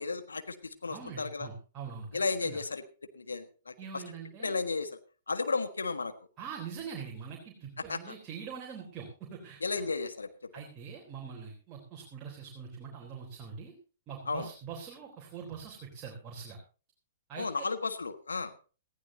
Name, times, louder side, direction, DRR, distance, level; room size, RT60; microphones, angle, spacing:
voice 1, 0.0-1.5 2.1-2.8 3.1-4.0 4.4-5.0 5.3-6.1 7.8-8.2 9.6-10.3 14.3-14.5 17.4-18.5, left 4 dB, 75° left, 10 dB, 1.4 m, -34 dB
voice 2, 0.9-2.6 3.8-4.6 6.4-9.6 10.5-13.7 14.1-16.6 17.3-17.6, right 6 dB, 25° right, -1 dB, 3.7 m, -43 dB
19.0 x 15.5 x 2.8 m, 0.35 s
figure-of-eight pair, 110°, 0 cm